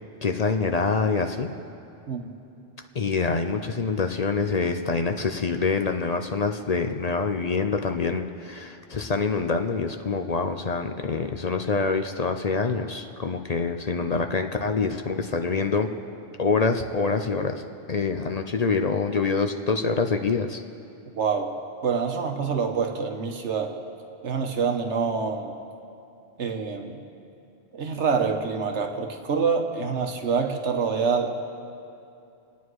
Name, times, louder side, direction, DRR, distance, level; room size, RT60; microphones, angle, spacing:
voice 1, 0.2-1.5 2.9-16.0 16.4-17.6 17.9-20.6, left 4 dB, 40° left, 6 dB, 0.7 m, -25 dB
voice 2, 21.2-21.5 21.8-23.8 24.2-25.6 26.4-27.0 27.7-31.3, right 5 dB, 90° right, 4 dB, 1.5 m, -26 dB
28.0 x 9.5 x 4.7 m, 2.7 s
omnidirectional pair, 1.2 m